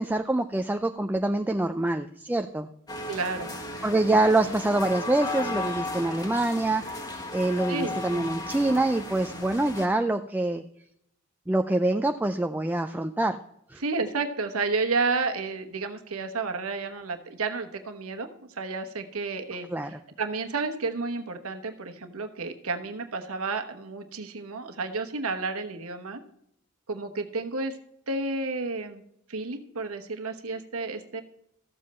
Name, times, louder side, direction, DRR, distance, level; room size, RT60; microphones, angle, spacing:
voice 1, 0.0-2.7 3.8-10.6 11.5-13.4 13.7-13.8 19.7-20.0, right 2 dB, 10° right, 6 dB, 0.4 m, -25 dB
sound 1, 2.9-9.9, left 2 dB, 20° left, 1.6 m, -35 dB
voice 2, 3.1-3.5 7.7-7.9 13.8-18.3 18.6-19.7 20.2-26.2 26.9-27.8 28.1-29.0 29.3-31.2, right 3 dB, 70° right, 6 dB, 1.1 m, -31 dB
14.0 x 7.5 x 4.3 m, 0.75 s
head